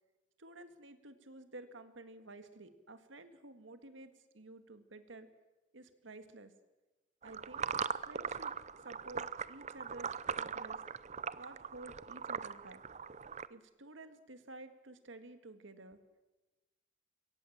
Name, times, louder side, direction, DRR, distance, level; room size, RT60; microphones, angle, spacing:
voice 1, 0.4-5.3 5.7-6.5 7.2-7.7 8.0-10.8 11.3-12.8 13.5-16.0, right 2 dB, 75° right, 9 dB, 2.0 m, -52 dB
sound 1, 7.2-13.5, right 6 dB, 35° right, 0.6 m, -40 dB
23.0 x 17.5 x 7.4 m, 1.1 s
head